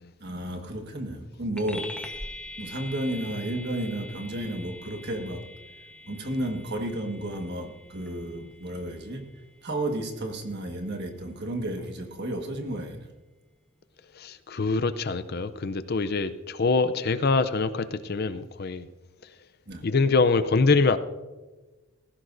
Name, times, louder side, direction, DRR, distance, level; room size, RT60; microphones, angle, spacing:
voice 1, 0.2-1.9 2.6-5.5 6.0-9.2 9.6-13.1 19.7-19.8, right 1 dB, 50° right, 1.6 m, -32 dB
sound 1, 1.6-11.4, left 1 dB, 5° left, 1.0 m, -44 dB
voice 2, 14.2-18.9 19.8-21.0, left 4 dB, 45° left, 0.5 m, -24 dB
18.0 x 15.5 x 2.6 m
head